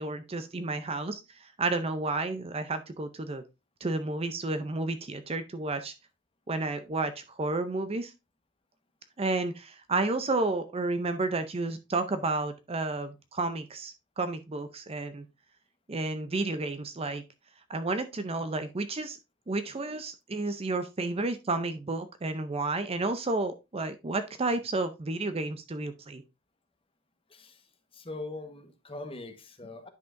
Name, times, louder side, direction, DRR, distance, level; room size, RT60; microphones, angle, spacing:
voice 1, 0.0-3.4 3.8-5.9 6.5-8.1 9.2-15.3 15.9-17.2 17.7-19.2 19.5-26.2, right 2 dB, 25° right, 0.5 m, -31 dB
voice 2, 27.3-27.6 27.9-29.9, left 2 dB, 25° left, 1.2 m, -41 dB
10.5 x 5.9 x 2.6 m
head